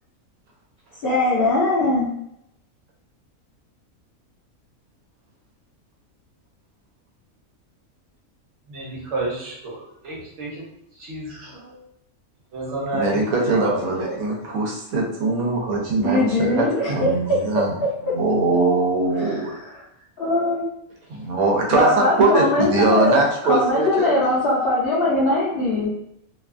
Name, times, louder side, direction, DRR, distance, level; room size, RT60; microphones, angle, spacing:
voice 1, 1.0-2.1 16.0-18.2 19.2-19.8 20.2-20.6 21.7-25.9, left 2 dB, 60° left, -6 dB, 0.6 m, -21 dB
voice 2, 8.7-10.7 10.9-11.8 12.5-14.7, right 2 dB, 60° right, -4 dB, 1.1 m, -31 dB
voice 3, 12.9-17.7 18.1-19.5 21.1-24.1, right 3 dB, 80° right, 0 dB, 1.1 m, -21 dB
2.7 x 2.3 x 2.4 m, 0.77 s
omnidirectional pair, 1.5 m